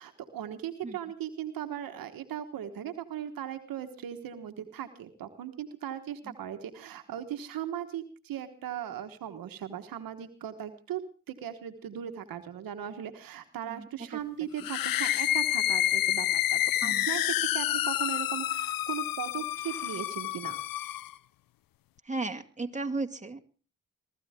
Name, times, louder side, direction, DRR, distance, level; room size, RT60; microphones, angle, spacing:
voice 1, 0.0-11.0 11.3-20.6, right 10 dB, 90° right, 8 dB, 1.3 m, -38 dB
sound 1, 14.6-21.1, left 13 dB, 90° left, 0.6 m, -29 dB
voice 2, 22.0-23.5, right 3 dB, 20° right, 5 dB, 2.3 m, -35 dB
23.0 x 14.0 x 3.6 m, 0.38 s
supercardioid pair, 40°, 34 cm